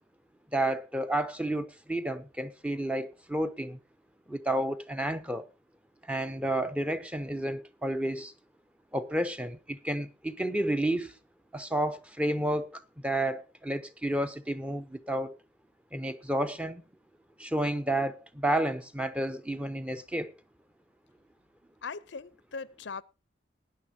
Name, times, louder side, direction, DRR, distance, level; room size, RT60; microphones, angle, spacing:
voice 1, 0.5-3.8 4.3-5.5 6.1-8.3 8.9-11.1 11.5-15.4 15.9-16.8 17.4-20.3, right 1 dB, 5° right, 0.7 m, -31 dB
voice 2, 21.8-23.0, left 5 dB, 90° left, 0.6 m, -39 dB
20.0 x 10.0 x 2.8 m
head